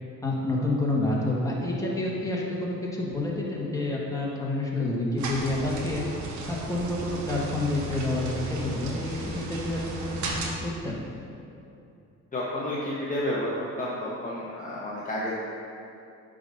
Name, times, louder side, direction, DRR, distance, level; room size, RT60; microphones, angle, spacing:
voice 1, 0.2-6.0 6.5-11.0, left 2 dB, 10° left, -4 dB, 1.6 m, -29 dB
sound 1, 5.2-10.5, right 3 dB, 70° right, 1.1 m, -35 dB
voice 2, 12.3-15.4, left 1 dB, 25° left, -6 dB, 1.1 m, -31 dB
8.6 x 3.8 x 5.4 m, 2.6 s
cardioid pair, 90°, 30 cm